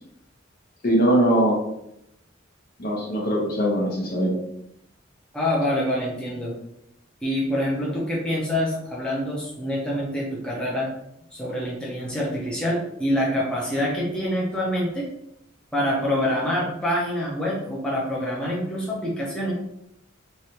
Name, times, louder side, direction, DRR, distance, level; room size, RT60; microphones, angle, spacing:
voice 1, 0.8-1.6 2.8-4.4, right 1 dB, 50° left, -1 dB, 0.8 m, -21 dB
voice 2, 5.3-6.5 7.2-10.9 11.3-15.1 15.7-19.5, equal, 5° left, -5 dB, 0.7 m, -26 dB
3.2 x 2.5 x 2.8 m, 0.79 s
head